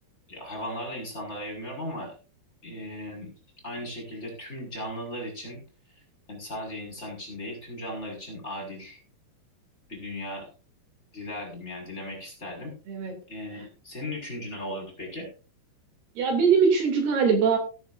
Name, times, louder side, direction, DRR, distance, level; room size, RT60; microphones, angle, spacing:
voice 1, 0.3-2.1 2.6-3.3 3.6-5.6 6.3-9.0 9.9-10.5 11.1-12.7 13.3-15.3, left 1 dB, 15° left, 0 dB, 5.7 m, -37 dB
voice 2, 16.2-17.6, right 6 dB, 70° right, 3 dB, 5.0 m, -21 dB
17.5 x 10.5 x 2.7 m, 0.34 s
omnidirectional pair, 4.7 m